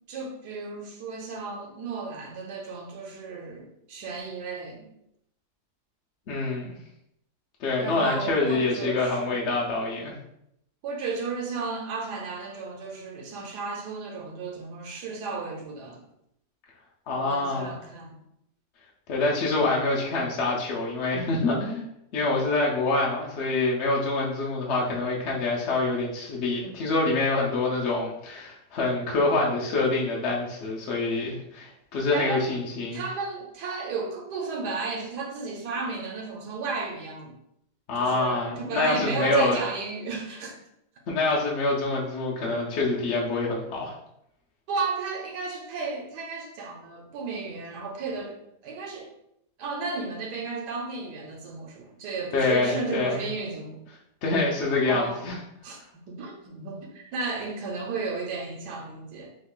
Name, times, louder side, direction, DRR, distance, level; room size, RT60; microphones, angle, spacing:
voice 1, 0.1-4.9 7.8-9.6 10.8-16.0 17.2-18.2 32.1-32.5 32.9-37.3 38.0-40.6 44.7-48.4 48.6-49.1 49.6-53.8 54.8-55.2 55.6-55.8 56.1-59.3, right 4 dB, 85° right, 0 dB, 1.3 m, -34 dB
voice 2, 6.3-6.7 7.6-10.1 17.1-17.7 19.1-33.0 37.9-39.6 41.1-43.9 52.3-53.2 54.2-55.4, left 3 dB, 60° left, -3 dB, 0.7 m, -26 dB
3.1 x 2.3 x 3.6 m, 0.78 s
omnidirectional pair, 1.7 m